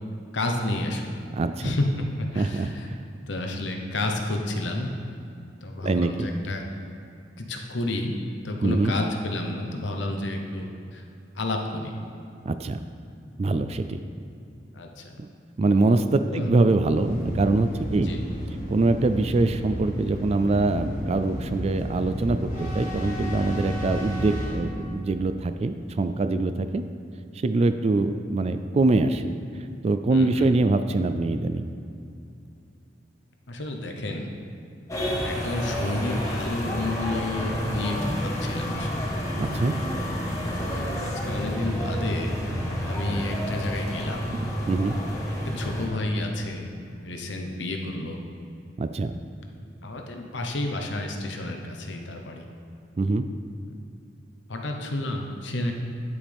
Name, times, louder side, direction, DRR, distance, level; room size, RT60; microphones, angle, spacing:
voice 1, 0.3-1.2 1.6-2.9 3.3-4.9 5.6-6.6 7.4-8.2 8.4-11.0 11.3-12.0 14.7-15.2 16.3-16.5 17.9-18.2 30.1-30.5 33.5-34.3 35.0-39.1 41.0-44.2 45.4-46.7 47.0-48.2 49.8-52.5 53.7-53.8 54.5-55.7, left 2 dB, 80° left, 3 dB, 1.0 m, -30 dB
voice 2, 1.4-1.7 2.3-3.0 5.8-6.3 8.6-8.9 12.5-12.8 13.4-14.0 15.2-15.3 15.6-18.1 18.7-26.8 27.4-29.3 29.8-31.7 39.4-39.7 44.7-45.0 48.8-49.1 53.0-53.3, right 2 dB, 35° right, 10 dB, 0.3 m, -24 dB
sound 1, 16.9-24.6, equal, 45° left, 1.9 m, -32 dB
sound 2, 34.9-45.9, equal, 20° left, 1.4 m, -29 dB
9.9 x 8.5 x 3.5 m, 2.6 s
head